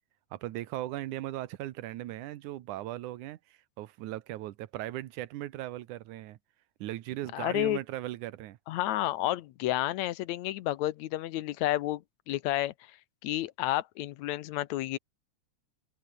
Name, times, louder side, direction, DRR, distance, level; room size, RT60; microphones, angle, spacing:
voice 1, 0.3-6.4 6.8-8.6, right 15 dB, 90° right, 2.4 m, -38 dB
voice 2, 7.3-7.8 8.7-12.7 13.2-15.0, left 15 dB, 75° left, 2.0 m, -31 dB
open air
omnidirectional pair, 3.4 m